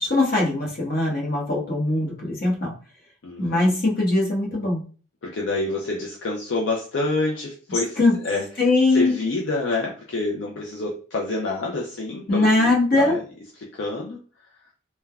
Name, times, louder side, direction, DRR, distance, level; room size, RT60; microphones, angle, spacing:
voice 1, 0.0-2.7 3.4-4.8 8.0-8.2 8.6-9.2 12.3-13.2, left 2 dB, 45° left, -3 dB, 1.0 m, -21 dB
voice 2, 3.2-3.7 5.2-8.4 8.9-13.2 13.6-14.2, left 2 dB, 65° left, -2 dB, 0.4 m, -27 dB
3.2 x 2.2 x 2.3 m, 0.38 s
head